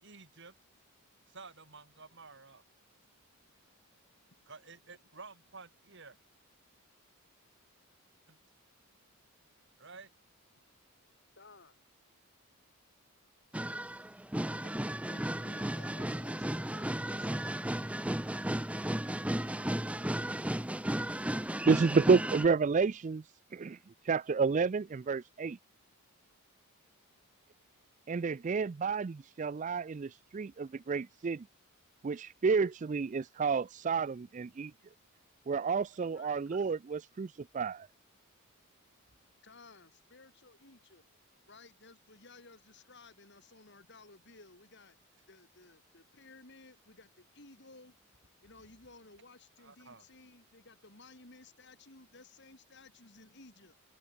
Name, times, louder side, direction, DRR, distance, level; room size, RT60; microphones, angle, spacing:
voice 1, 0.0-0.5 1.3-2.6 4.5-6.2 8.3-8.4 9.8-10.1 36.5-36.6 49.6-50.0, right 4 dB, 55° right, 4.3 m, -52 dB
voice 2, 11.4-11.8 14.6-17.5 36.1-36.4 39.4-41.1 41.5-48.0 48.4-53.8, left 3 dB, 50° left, 3.8 m, -57 dB
sound 1, 13.5-22.5, right 1 dB, 5° right, 0.7 m, -34 dB
voice 3, 21.7-23.2 23.5-23.8 24.0-25.6 28.1-31.4 32.0-34.7 35.5-37.9, right 5 dB, 35° right, 0.3 m, -30 dB
head